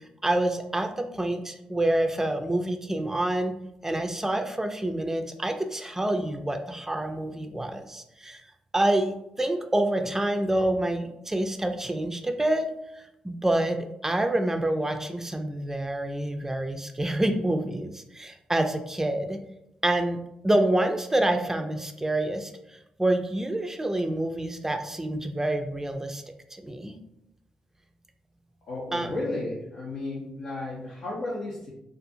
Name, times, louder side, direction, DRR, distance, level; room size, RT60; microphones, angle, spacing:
voice 1, 0.2-3.6 3.8-8.4 8.7-12.7 13.2-19.4 19.8-20.2 20.4-22.5 23.0-26.2 26.6-27.0 28.9-29.2, right 1 dB, 15° right, 5 dB, 0.4 m, -27 dB
voice 2, 28.7-31.7, left 2 dB, 70° left, -7 dB, 0.7 m, -33 dB
2.6 x 2.4 x 2.5 m, 0.82 s
supercardioid pair, 55°, 3 cm